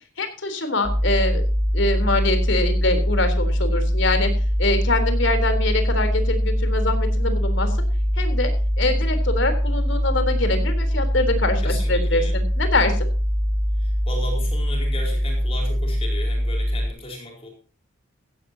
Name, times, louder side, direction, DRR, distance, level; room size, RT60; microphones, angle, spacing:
voice 1, 0.2-1.4 1.7-4.3 4.6-7.8 8.2-8.5 8.8-13.1, left 2 dB, 60° left, 8 dB, 3.6 m, -24 dB
sound 1, 0.8-16.9, equal, 30° right, 3.3 m, -22 dB
voice 2, 11.6-12.4 13.7-17.5, left 1 dB, 30° left, 1 dB, 4.6 m, -35 dB
16.5 x 16.0 x 2.8 m, 0.37 s
head